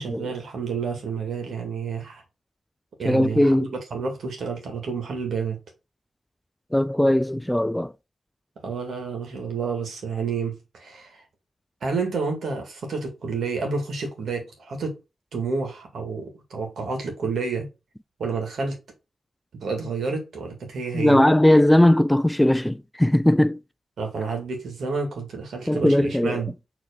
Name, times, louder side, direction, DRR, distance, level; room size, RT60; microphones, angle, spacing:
voice 1, 0.0-2.2 3.0-5.6 8.6-11.2 11.8-15.0 15.3-17.7 18.2-18.8 19.6-21.2 24.0-26.5, right 4 dB, 70° right, 2.2 m, -30 dB
voice 2, 3.0-3.7 6.7-7.9 20.9-23.6 25.7-26.4, left 1 dB, 5° left, 0.4 m, -19 dB
4.7 x 3.9 x 5.3 m
supercardioid pair, 45°, 0 cm